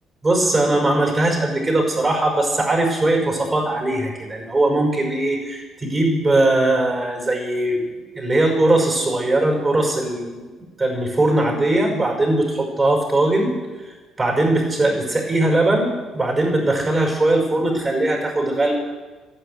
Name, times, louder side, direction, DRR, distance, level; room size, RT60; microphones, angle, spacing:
voice 1, 0.2-7.8 8.1-10.5 10.8-13.5 14.2-18.7, right 2 dB, 25° right, 1 dB, 5.5 m, -20 dB
13.5 x 11.0 x 9.5 m, 1.3 s
cardioid pair, 125°, 0 cm